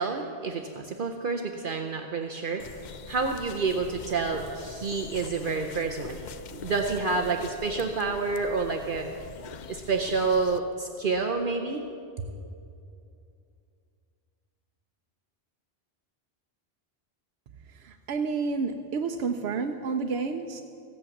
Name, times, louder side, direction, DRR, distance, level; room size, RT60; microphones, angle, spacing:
voice 1, 0.0-2.6 3.1-9.1 9.7-11.8, right 4 dB, 60° right, 3 dB, 0.9 m, -29 dB
sound 1, 2.6-10.6, left 7 dB, 55° left, 0.6 m, -44 dB
voice 2, 17.7-20.6, right 4 dB, 85° right, 5 dB, 0.9 m, -30 dB
15.5 x 8.4 x 7.1 m, 2.5 s
omnidirectional pair, 1.0 m